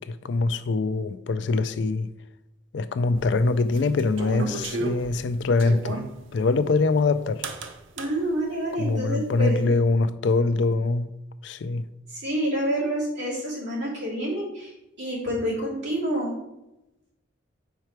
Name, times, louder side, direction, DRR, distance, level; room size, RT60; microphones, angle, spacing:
voice 1, 0.1-2.1 2.7-6.0 6.3-7.5 8.8-11.1 11.4-11.8, left 3 dB, 65° left, 0.4 m, -23 dB
sound 1, 3.2-6.1 7.4-8.1, right 2 dB, 80° right, 0.7 m, -32 dB
voice 2, 8.0-9.7 12.1-14.7 15.0-16.3, right 1 dB, 60° right, 2.6 m, -28 dB
5.7 x 4.7 x 4.5 m
head